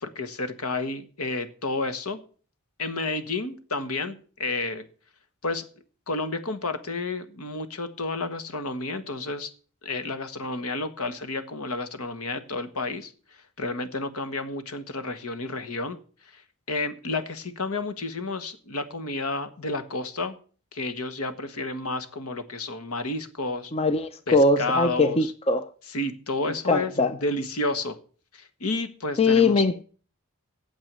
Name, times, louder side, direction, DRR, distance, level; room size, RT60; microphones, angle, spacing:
voice 1, 0.0-2.2 2.8-4.8 5.4-5.7 6.1-9.5 9.8-13.1 13.6-16.0 16.2-16.4 16.7-20.4 20.7-23.7 24.3-25.3 25.9-28.0 28.3-29.6, left 2 dB, 75° left, 1.3 m, -31 dB
voice 2, 23.7-25.7 26.5-27.1 29.2-29.8, left 3 dB, 25° left, 0.5 m, -22 dB
9.2 x 7.4 x 8.2 m
head